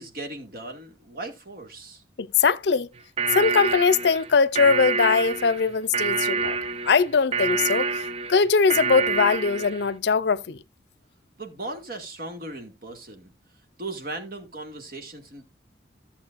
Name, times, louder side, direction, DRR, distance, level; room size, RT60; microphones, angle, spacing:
voice 1, 0.0-2.0 11.4-13.3 13.8-15.4, right 2 dB, 50° right, 2.1 m, -37 dB
voice 2, 2.2-2.9 3.3-6.6 6.8-10.6, left 5 dB, 70° left, 0.5 m, -21 dB
sound 1, 3.0-9.9, right 5 dB, 30° right, 0.5 m, -27 dB
14.5 x 7.1 x 2.5 m
head